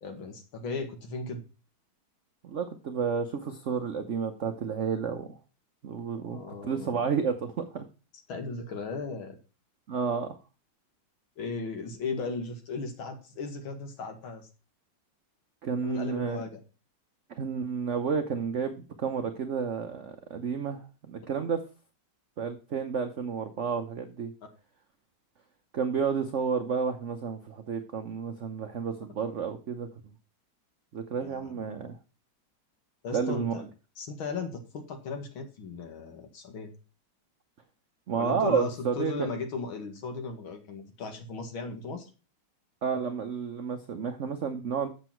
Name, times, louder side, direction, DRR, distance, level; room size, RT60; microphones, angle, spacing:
voice 1, 0.0-1.4 6.2-7.1 8.3-9.4 11.4-14.5 15.8-16.6 31.2-31.6 33.0-33.6 34.0-36.7 38.2-42.1, left 4 dB, 75° left, 5 dB, 2.5 m, -36 dB
voice 2, 2.4-5.4 5.8-7.8 9.9-10.4 15.6-16.4 17.4-21.6 22.4-24.3 25.7-29.9 30.9-32.0 33.1-33.6 38.1-39.3 42.8-44.9, right 6 dB, 55° right, 7 dB, 0.8 m, -31 dB
8.2 x 6.9 x 4.5 m, 0.32 s
omnidirectional pair, 2.3 m